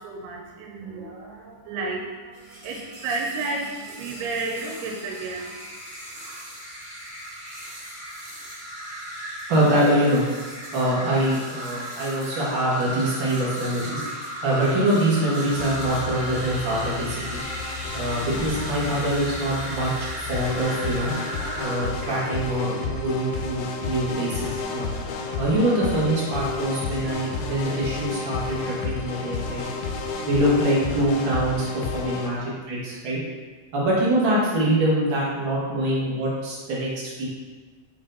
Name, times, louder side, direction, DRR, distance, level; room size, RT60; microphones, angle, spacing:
voice 1, 0.0-5.7, right 3 dB, 90° right, 0 dB, 2.7 m, -32 dB
sound 1, 2.3-21.8, equal, 40° right, 1.0 m, -36 dB
voice 2, 9.5-10.2 10.7-14.0 14.4-17.4 17.9-19.9 20.3-21.1 21.6-24.9 25.3-29.7 30.3-33.2 33.7-37.3, right 1 dB, 65° right, -7 dB, 1.2 m, -24 dB
sound 2, 15.5-32.3, left 4 dB, 80° left, 2.5 m, -31 dB
5.9 x 4.3 x 3.9 m, 1.4 s
omnidirectional pair, 4.5 m